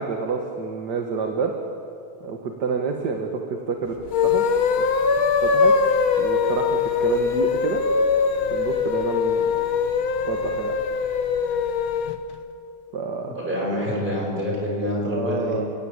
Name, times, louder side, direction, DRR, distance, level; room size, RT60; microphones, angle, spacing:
voice 1, 0.0-1.5 2.2-4.0 4.2-4.4 5.4-5.7 6.2-7.8 8.5-9.5 10.3-10.8 12.9-13.7 15.0-15.6, right 5 dB, 55° right, 3 dB, 2.1 m, -28 dB
sound 1, 4.0-12.2, left 5 dB, 75° left, 2.1 m, -22 dB
voice 2, 13.2-15.6, left 1 dB, 20° right, -2 dB, 6.0 m, -26 dB
29.0 x 16.5 x 8.9 m, 2.6 s
omnidirectional pair, 2.3 m